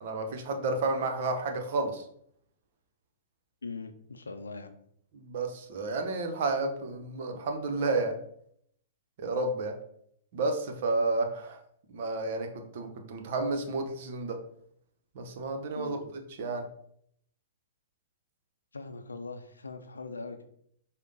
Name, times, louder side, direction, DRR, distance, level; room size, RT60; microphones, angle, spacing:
voice 1, 0.0-2.0 5.1-8.2 9.2-9.7 10.3-11.6 11.9-14.4 15.1-16.0 16.4-16.6, right 3 dB, 55° right, 5 dB, 0.8 m, -31 dB
voice 2, 3.6-4.8 15.7-16.0 18.7-20.4, left 4 dB, 80° left, 7 dB, 0.5 m, -41 dB
5.0 x 2.2 x 3.9 m, 0.68 s
figure-of-eight pair, 110°, 0 cm